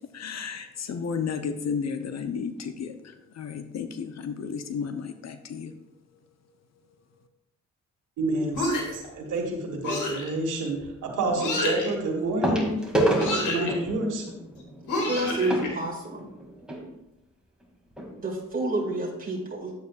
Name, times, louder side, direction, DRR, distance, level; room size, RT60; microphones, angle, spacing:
voice 1, 0.1-5.7, left 6 dB, 60° left, 9 dB, 0.7 m, -33 dB
voice 2, 8.2-12.9 13.5-14.2, right 2 dB, 85° right, 1 dB, 1.6 m, -29 dB
sound 1, 8.5-9.1 9.8-10.3 11.4-11.9 13.1-13.7 14.9-15.7, left 2 dB, 80° left, 2.2 m, -28 dB
sound 2, 8.9-9.1 10.8-10.9 12.4-16.8 17.6-17.7 17.9-18.1 18.6-18.7, right 1 dB, 5° right, 2.3 m, -29 dB
voice 3, 15.1-16.2 18.2-19.7, right 2 dB, 30° right, -2 dB, 2.1 m, -29 dB
9.7 x 8.1 x 2.4 m, 0.90 s
cardioid pair, 70°, 30 cm